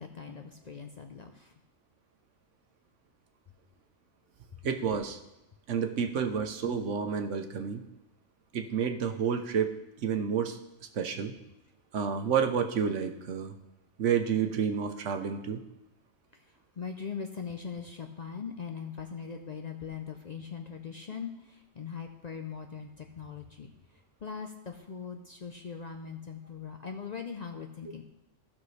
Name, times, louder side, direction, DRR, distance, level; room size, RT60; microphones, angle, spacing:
voice 1, 0.0-1.5 16.8-23.7 24.2-28.0, left 6 dB, 50° left, 4 dB, 0.5 m, -40 dB
voice 2, 4.6-5.2 5.7-7.8 8.5-10.6 10.9-11.3 11.9-13.5 14.0-15.6, right 7 dB, 75° right, 6 dB, 1.2 m, -30 dB
15.0 x 6.0 x 3.2 m, 0.93 s
omnidirectional pair, 1.3 m